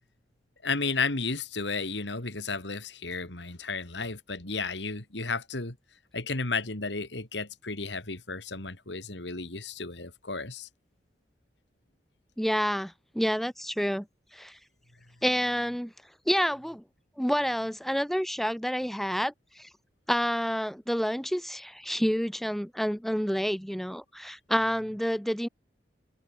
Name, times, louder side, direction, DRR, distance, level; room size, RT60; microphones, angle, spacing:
voice 1, 0.6-5.7 6.1-10.7, left 4 dB, 85° left, 2.9 m, -33 dB
voice 2, 12.4-14.1 14.3-14.6 15.2-15.9 16.3-16.8 17.2-19.7 20.1-25.5, equal, ahead, 1.8 m, -29 dB
head